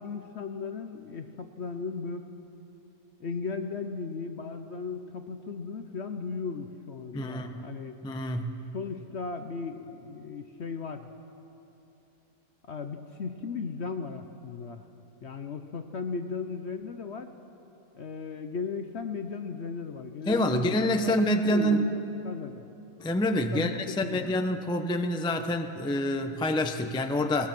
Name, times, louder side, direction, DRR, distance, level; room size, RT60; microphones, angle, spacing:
voice 1, 0.0-2.3 3.2-8.0 8.7-11.1 12.6-14.9 15.2-17.3 17.9-22.6 23.5-24.3, left 5 dB, 55° left, 7 dB, 0.8 m, -36 dB
voice 2, 7.1-7.6 8.0-8.5 20.3-21.9 23.0-27.5, equal, 5° left, 6 dB, 0.5 m, -27 dB
21.5 x 20.0 x 6.1 m, 2.9 s
omnidirectional pair, 1.8 m